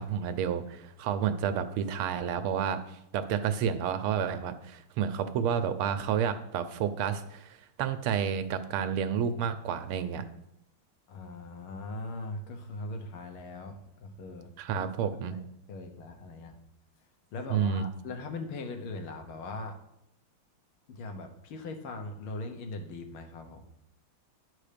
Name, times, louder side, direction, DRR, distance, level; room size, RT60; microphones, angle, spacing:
voice 1, 0.0-10.2 14.6-15.4 17.5-17.9, right 8 dB, 85° right, 10 dB, 1.6 m, -30 dB
voice 2, 11.1-14.9 15.3-16.6 17.3-19.8 20.9-23.7, left 2 dB, 80° left, 5 dB, 1.8 m, -40 dB
11.0 x 4.4 x 5.0 m, 0.80 s
omnidirectional pair, 2.3 m